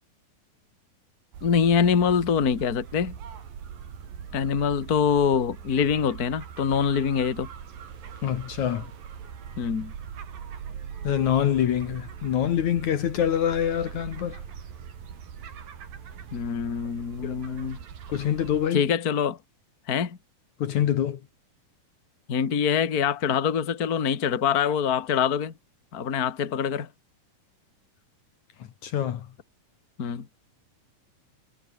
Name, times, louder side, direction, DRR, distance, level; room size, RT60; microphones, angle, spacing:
sound 1, 1.3-18.7, right 7 dB, 75° right, 4.8 m, -41 dB
voice 1, 1.4-3.2 4.3-7.5 9.6-9.9 16.3-17.8 18.7-19.4 19.9-20.2 22.3-25.5 25.9-26.9 30.0-30.3, left 7 dB, 30° left, 2.0 m, -24 dB
voice 2, 8.2-8.9 11.0-14.4 17.2-17.6 18.1-18.8 20.6-21.2 28.8-29.3, left 10 dB, 60° left, 2.6 m, -25 dB
omnidirectional pair, 4.0 m